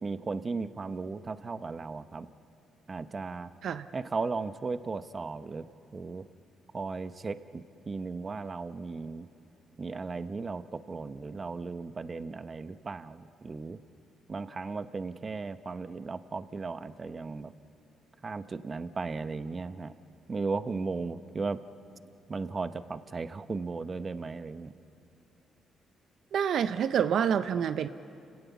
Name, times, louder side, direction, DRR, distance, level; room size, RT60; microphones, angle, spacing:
voice 1, 0.0-2.3 2.9-3.5 3.9-5.6 5.9-6.2 6.7-9.3 9.8-10.6 10.9-13.8 14.3-17.5 18.2-19.9 20.3-21.6 22.3-24.7, right 4 dB, 35° right, 12 dB, 0.8 m, -36 dB
voice 2, 26.3-27.9, right 8 dB, 65° right, 11 dB, 0.5 m, -27 dB
29.5 x 17.5 x 7.1 m, 2.7 s
cardioid pair, 90°, 0 cm